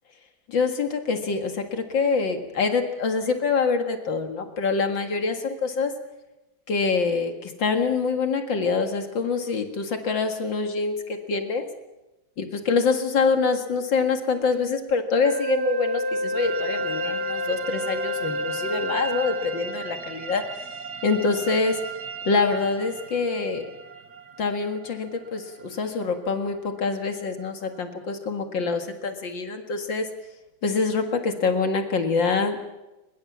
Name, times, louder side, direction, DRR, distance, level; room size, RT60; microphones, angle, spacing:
voice 1, 0.5-5.9 6.7-11.7 12.4-20.7 21.0-21.7 22.2-23.7 24.4-30.1 30.6-32.6, left 4 dB, 65° left, 6 dB, 2.5 m, -25 dB
Wind instrument woodwind instrument, 15.2-20.0, left 1 dB, 35° right, 1.7 m, -29 dB
sound 1, 16.4-27.9, right 6 dB, 55° right, 1.7 m, -39 dB
22.5 x 22.0 x 7.3 m, 1.0 s
omnidirectional pair, 2.2 m